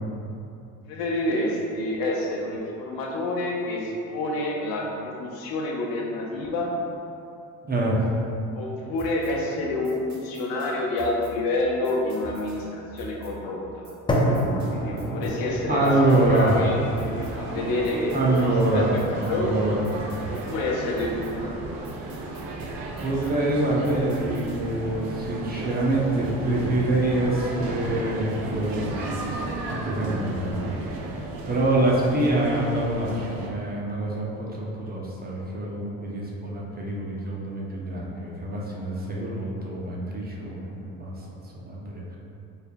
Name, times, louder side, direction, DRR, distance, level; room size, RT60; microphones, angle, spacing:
voice 1, 0.9-6.7 8.6-13.9 14.7-16.0 16.2-18.2 18.7-19.8 20.3-21.7, left 2 dB, 75° left, -2 dB, 0.8 m, -28 dB
voice 2, 7.7-8.0 15.7-16.8 18.1-20.0 23.0-28.9 29.6-30.6 31.5-42.2, right 1 dB, 25° right, -4 dB, 0.7 m, -25 dB
sound 1, 9.0-24.8, right 1 dB, 50° right, 1.2 m, -46 dB
sound 2, 14.1-22.1, equal, 15° left, 0.4 m, -31 dB
sound 3, 15.9-33.5, right 2 dB, 70° right, 0.6 m, -34 dB
4.4 x 3.4 x 2.2 m, 2.7 s
supercardioid pair, 95°, 35 cm